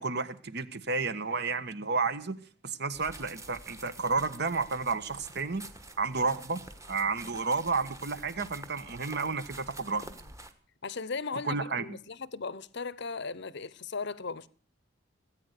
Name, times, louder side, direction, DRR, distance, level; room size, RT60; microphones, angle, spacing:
voice 1, 0.0-2.4 2.6-5.6 6.0-6.6 6.9-10.1 11.4-12.0, right 4 dB, 50° right, 1.4 m, -31 dB
sound 1, 2.9-10.5, right 2 dB, 15° right, 1.4 m, -48 dB
voice 2, 10.8-14.5, left 4 dB, 55° left, 0.8 m, -37 dB
18.5 x 9.3 x 8.3 m
head